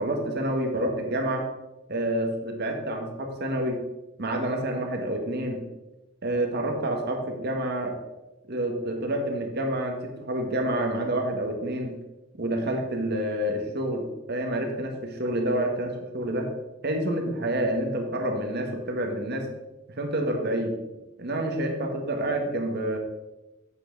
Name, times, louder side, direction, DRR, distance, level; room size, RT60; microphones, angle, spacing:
voice 1, 0.0-1.5 1.9-3.8 4.2-5.6 6.2-7.9 8.5-11.9 12.4-16.5 16.8-19.4 19.9-20.7 21.2-23.0, right 1 dB, 55° right, 3 dB, 1.6 m, -28 dB
8.1 x 8.0 x 4.0 m, 1.0 s
head